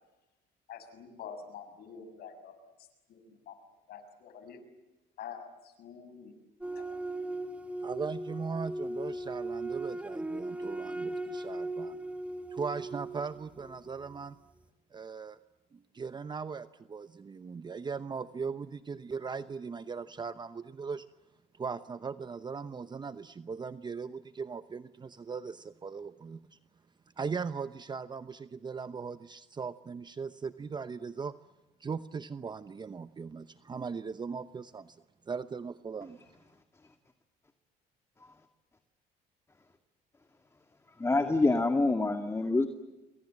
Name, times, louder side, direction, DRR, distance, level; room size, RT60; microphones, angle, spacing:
voice 1, 0.7-3.6 3.9-4.6 5.2-6.3 6.7-6.8, left 7 dB, 70° left, 9 dB, 6.8 m, -47 dB
sound 1, 6.6-14.2, right 2 dB, 10° right, 2.0 m, -38 dB
voice 2, 7.8-12.0 12.5-14.4 14.9-15.4 15.7-21.1 21.5-26.6 27.2-31.3 31.8-35.0 35.3-36.2, right 5 dB, 25° right, 12 dB, 0.8 m, -39 dB
voice 3, 41.0-42.7, left 2 dB, 15° left, 6 dB, 2.1 m, -26 dB
28.0 x 24.5 x 7.6 m, 1.1 s
cardioid pair, 110°, 17 cm